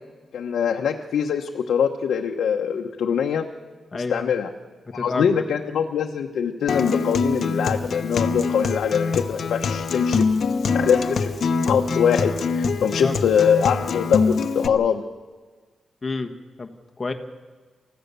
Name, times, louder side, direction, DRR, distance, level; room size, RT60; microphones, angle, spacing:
voice 1, 0.3-3.4 3.9-4.5 4.9-10.3 10.7-11.3 11.7-15.0, left 7 dB, 90° left, 2 dB, 1.1 m, -23 dB
voice 2, 3.9-4.3 4.9-5.3 12.8-13.1 16.0-16.3 16.6-16.7 17.0-17.1, left 3 dB, 25° left, 5 dB, 1.4 m, -28 dB
Acoustic guitar, 6.7-14.7, left 4 dB, 55° left, 1.1 m, -24 dB
28.5 x 15.0 x 6.9 m, 1.4 s
wide cardioid pair, 145°, 0 cm